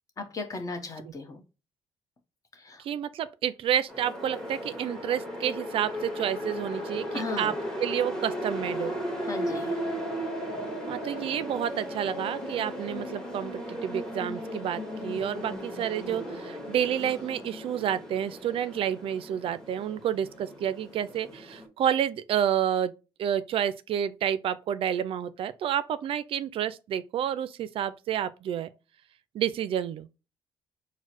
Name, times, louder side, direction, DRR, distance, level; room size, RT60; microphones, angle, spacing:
voice 1, 0.2-1.4 2.5-2.8 7.1-7.5 9.2-9.7, left 3 dB, 35° left, 1.0 m, -36 dB
voice 2, 2.8-7.5 7.8-9.0 10.9-22.9 23.2-28.7 29.3-30.1, right 9 dB, 65° right, 0.4 m, -29 dB
sound 1, 3.9-21.7, equal, 5° left, 1.3 m, -36 dB
4.5 x 2.1 x 4.3 m
cardioid pair, 85°, 10 cm